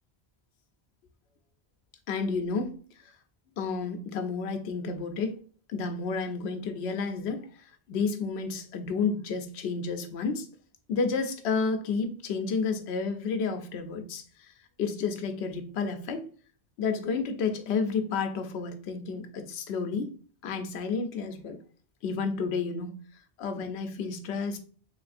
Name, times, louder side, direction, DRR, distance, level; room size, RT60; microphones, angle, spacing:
voice 1, 2.1-3.1 3.6-5.4 5.7-10.5 10.9-14.5 14.8-16.2 16.8-20.1 20.4-21.6 22.0-23.0 23.4-24.6, left 5 dB, 80° left, 6 dB, 0.9 m, -31 dB
3.5 x 3.2 x 2.4 m, 0.43 s
omnidirectional pair, 1.1 m